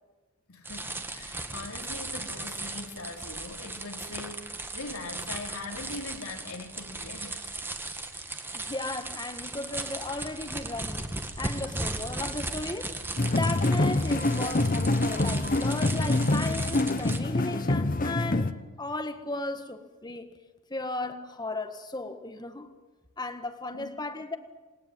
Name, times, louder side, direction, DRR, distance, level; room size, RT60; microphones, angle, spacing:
voice 1, 0.5-7.5 23.7-23.9, left 3 dB, 85° left, 3.3 m, -41 dB
sound 1, 0.6-17.2, right 2 dB, 10° right, 1.7 m, -37 dB
voice 2, 8.5-11.1 11.4-12.9 13.3-20.3 20.7-22.7 23.2-24.4, left 2 dB, 20° left, 1.7 m, -35 dB
sound 2, 13.2-18.5, left 2 dB, 40° left, 1.0 m, -26 dB
28.0 x 20.0 x 9.1 m
head